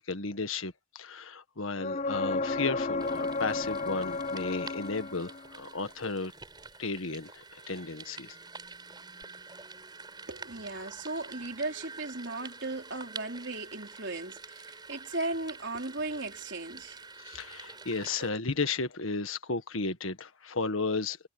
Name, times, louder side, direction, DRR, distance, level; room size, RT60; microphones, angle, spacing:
voice 1, 0.0-6.3 6.8-8.4 17.3-21.3, left 3 dB, 85° left, 1.6 m, -34 dB
sound 1, 1.8-5.5 9.2-9.3, left 3 dB, 35° left, 0.5 m, -33 dB
sound 2, 3.0-18.3, right 4 dB, 20° right, 6.0 m, -47 dB
voice 2, 10.3-17.0 18.2-18.3, right 2 dB, 60° right, 4.0 m, -37 dB
head